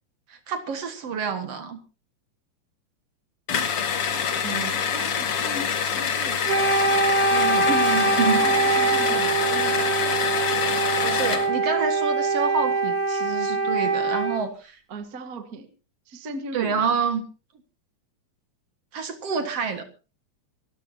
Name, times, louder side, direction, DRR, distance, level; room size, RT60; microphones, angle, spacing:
voice 1, 0.3-1.8 7.2-8.4 11.0-14.7 16.5-17.3 18.9-19.9, right 5 dB, 60° right, 7 dB, 2.5 m, -28 dB
sound 1, 3.5-11.5, left 7 dB, 55° left, 2.3 m, -26 dB
voice 2, 4.4-6.9 8.4-10.3 14.9-15.7 16.1-17.0, right 2 dB, 40° right, 7 dB, 1.6 m, -38 dB
Wind instrument woodwind instrument, 6.4-14.5, right 3 dB, 20° right, 1.2 m, -23 dB
25.0 x 13.5 x 2.8 m, 0.34 s
omnidirectional pair, 3.3 m